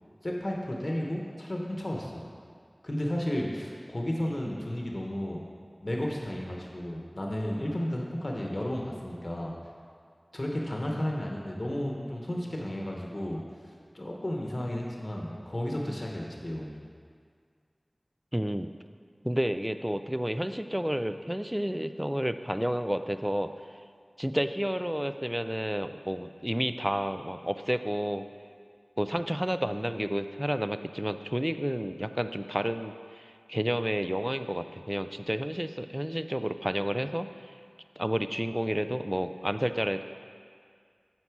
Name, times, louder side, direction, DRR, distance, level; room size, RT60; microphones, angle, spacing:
voice 1, 0.2-2.2 2.8-5.4 5.8-9.5 10.3-13.4 13.9-16.8, left 1 dB, 50° left, -1 dB, 1.0 m, -33 dB
voice 2, 18.3-18.7 19.2-23.5 24.2-28.2 29.0-37.3 38.0-40.0, equal, 10° right, 10 dB, 0.3 m, -30 dB
8.0 x 4.2 x 6.0 m, 2.1 s
wide cardioid pair, 40°, 0 cm